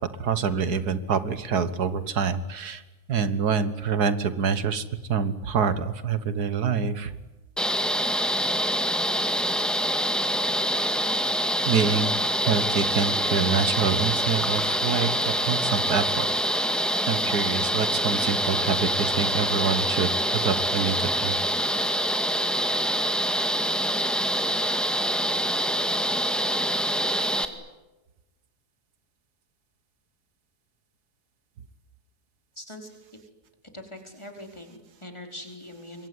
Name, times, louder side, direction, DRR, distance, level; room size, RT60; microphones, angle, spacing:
voice 1, 0.2-2.8 3.1-7.2 11.7-12.1 12.5-16.3 17.1-21.4, right 6 dB, 80° right, 13 dB, 1.8 m, -26 dB
sound 1, 7.6-27.5, equal, ahead, 2.0 m, -25 dB
voice 2, 32.6-33.0 33.7-36.1, left 1 dB, 15° left, 4 dB, 4.5 m, -42 dB
26.0 x 23.0 x 9.6 m, 1.1 s
omnidirectional pair, 1.7 m